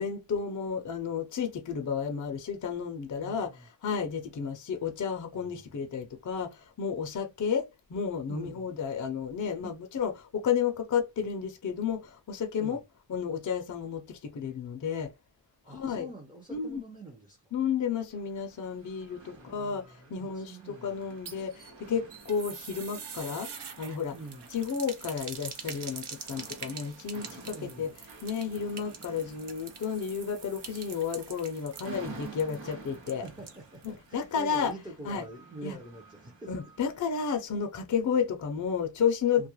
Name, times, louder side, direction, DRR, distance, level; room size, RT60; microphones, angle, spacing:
voice 1, 0.0-3.5 3.8-12.8 13.1-15.1 15.7-16.1 16.5-16.8 17.5-23.5 23.8-24.1 24.5-27.9 28.2-33.2 33.8-34.7 35.1-35.2 35.6-35.8 36.5-39.5, left 7 dB, 45° left, 0.5 m, -32 dB
voice 2, 3.1-3.7 5.3-5.7 8.3-8.7 9.6-9.7 12.6-12.8 15.6-17.5 19.3-21.1 24.1-24.5 27.5-28.0 33.1-36.6 39.4-39.5, right 2 dB, 10° right, 0.5 m, -46 dB
sound 1, 18.1-37.3, right 4 dB, 80° right, 1.1 m, -51 dB
sound 2, 21.0-34.0 34.3-34.4 34.7-34.8, right 6 dB, 60° right, 0.7 m, -45 dB
2.3 x 2.0 x 2.9 m
wide cardioid pair, 105°, 45 cm